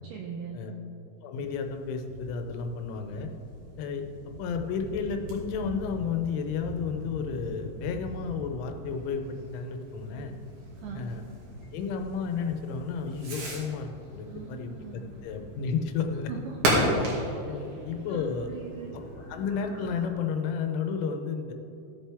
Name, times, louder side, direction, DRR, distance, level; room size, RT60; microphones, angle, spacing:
voice 1, 0.0-0.8 10.8-11.1 14.3-15.2 16.3-17.0 18.1-19.0, right 6 dB, 85° right, 1 dB, 2.3 m, -41 dB
voice 2, 1.2-3.3 3.8-10.3 11.0-11.2 11.7-14.7 15.2-16.3 17.4-18.5 19.3-21.5, left 6 dB, 90° left, 5 dB, 3.3 m, -32 dB
sound 1, 1.4-20.1, equal, 30° right, 1.8 m, -45 dB
Fireworks, 4.6-19.2, right 1 dB, 50° right, 3.0 m, -36 dB
17.0 x 7.4 x 3.5 m, 2.8 s
omnidirectional pair, 5.4 m